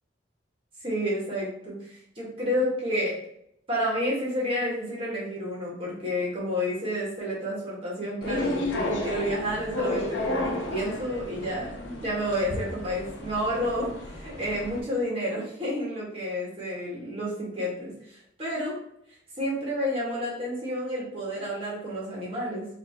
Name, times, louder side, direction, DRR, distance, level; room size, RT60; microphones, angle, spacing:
voice 1, 0.8-3.1 3.7-18.7 19.4-22.7, equal, 30° right, -5 dB, 1.4 m, -30 dB
sound 1, 8.2-14.8, left 2 dB, 80° left, 0.7 m, -33 dB
4.3 x 2.8 x 2.8 m, 0.74 s
head